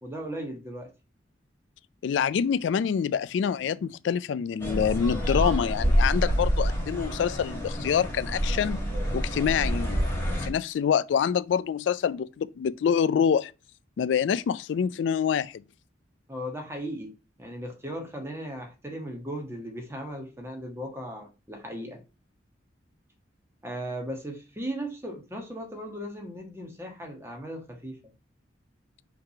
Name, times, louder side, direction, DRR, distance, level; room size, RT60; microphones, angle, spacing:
voice 1, 0.0-0.9 16.3-17.1 17.4-22.0 23.6-28.0, equal, 15° right, 1.3 m, -37 dB
voice 2, 2.0-8.8 9.1-10.0 10.4-13.5 14.0-15.6, left 7 dB, 75° left, 0.3 m, -26 dB
sound 1, 4.6-10.5, equal, 10° left, 2.1 m, -27 dB
5.7 x 3.4 x 5.6 m
head